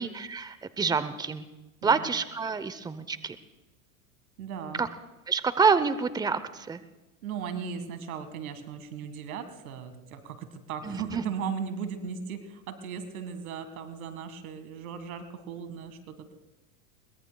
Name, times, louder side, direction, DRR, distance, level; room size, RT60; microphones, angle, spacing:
voice 1, 0.0-1.4 1.8-3.4 4.8-4.9 5.3-6.8 10.8-11.2, right 5 dB, 10° right, 13 dB, 0.7 m, -27 dB
voice 2, 4.4-4.9 7.2-16.3, right 7 dB, 75° right, 9 dB, 1.9 m, -37 dB
22.0 x 21.0 x 2.3 m, 1.0 s
hypercardioid pair, 100°, 42 cm